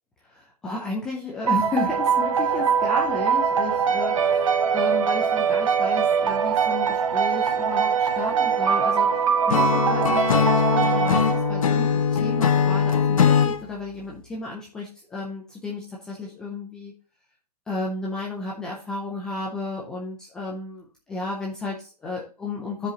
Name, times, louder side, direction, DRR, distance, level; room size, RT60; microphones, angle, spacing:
voice 1, 0.3-16.9 17.7-22.9, left 3 dB, 5° left, -4 dB, 0.5 m, -33 dB
sound 1, 1.5-11.8, right 7 dB, 55° right, 0.8 m, -22 dB
sound 2, 4.1-13.9, right 1 dB, 30° left, 2.3 m, -45 dB
Acoustic guitar / Strum, 9.5-13.6, left 7 dB, 60° left, 0.9 m, -21 dB
12.0 x 5.0 x 2.9 m, 0.34 s
hypercardioid pair, 165°, 20 cm